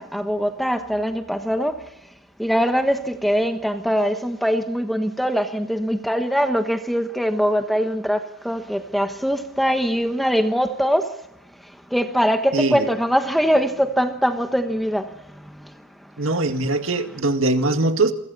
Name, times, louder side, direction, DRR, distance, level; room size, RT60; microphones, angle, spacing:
voice 1, 0.0-1.9 2.4-11.2 11.6-15.9, equal, ahead, 1.2 m, -22 dB
voice 2, 12.5-12.9 16.2-18.1, right 2 dB, 60° right, 2.1 m, -21 dB
28.5 x 24.0 x 4.1 m
head